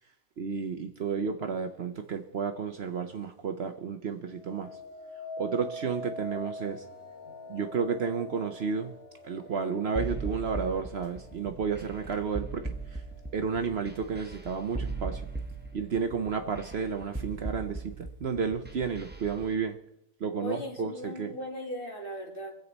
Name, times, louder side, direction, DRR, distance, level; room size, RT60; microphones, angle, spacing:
voice 1, 0.4-4.7 5.4-6.8 7.5-8.9 9.2-13.0 13.3-15.3 15.7-19.8 20.2-21.3, right 5 dB, 55° right, 1.0 m, -32 dB
sound 1, 4.3-13.5 14.0-14.5, left 1 dB, 60° left, 1.7 m, -45 dB
sound 2, 10.0-19.5, right 3 dB, 10° right, 0.9 m, -38 dB
voice 2, 20.4-22.6, equal, 40° left, 2.5 m, -38 dB
24.0 x 8.0 x 4.1 m
omnidirectional pair, 1.4 m